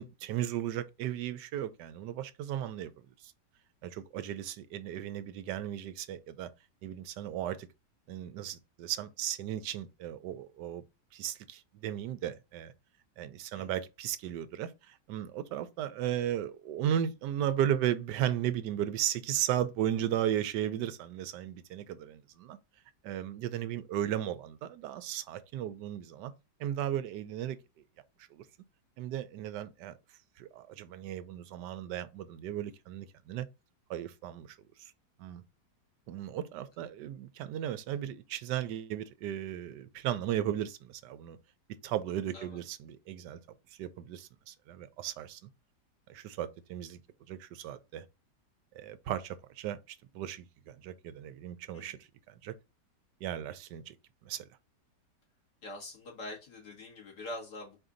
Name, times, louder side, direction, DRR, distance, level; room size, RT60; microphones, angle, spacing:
voice 1, 0.0-2.9 3.2-3.3 3.8-6.5 6.8-7.7 8.1-10.8 11.1-12.7 13.2-22.6 23.0-26.3 26.6-27.6 28.3-28.5 29.0-30.0 30.4-33.5 33.9-34.9 35.2-35.4 36.1-41.4 41.8-43.4 43.7-45.4 46.1-47.0 47.3-48.1 48.7-52.5 53.2-54.0 54.2-54.5, right 11 dB, 80° right, 1.2 m, -35 dB
voice 2, 55.6-57.8, left 1 dB, 70° left, 2.4 m, -44 dB
4.6 x 2.7 x 3.7 m
omnidirectional pair, 1.9 m